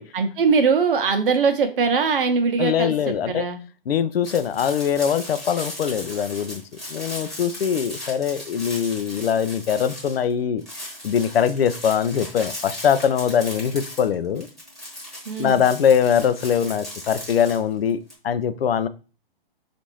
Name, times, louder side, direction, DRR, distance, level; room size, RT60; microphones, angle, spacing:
voice 1, 0.1-3.6 15.3-15.6, right 5 dB, 65° right, 7 dB, 0.8 m, -21 dB
voice 2, 2.6-3.4 3.9-6.6 6.9-10.6 11.0-14.5 15.4-18.9, left 8 dB, 85° left, 13 dB, 0.5 m, -22 dB
sound 1, 4.2-10.3 10.6-18.1, left 1 dB, ahead, 1.1 m, -37 dB
4.0 x 2.5 x 3.0 m, 0.35 s
hypercardioid pair, 135°, 29 cm